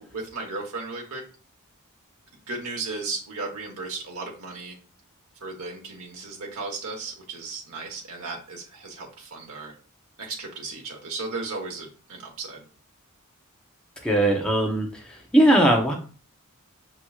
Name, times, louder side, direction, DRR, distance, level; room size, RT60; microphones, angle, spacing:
voice 1, 0.1-1.3 2.3-4.7 5.4-9.7 10.2-12.6, right 3 dB, 75° right, 0 dB, 1.1 m, -35 dB
voice 2, 14.0-15.9, right 1 dB, 5° left, 0 dB, 0.7 m, -20 dB
5.9 x 3.0 x 2.4 m, 0.38 s
head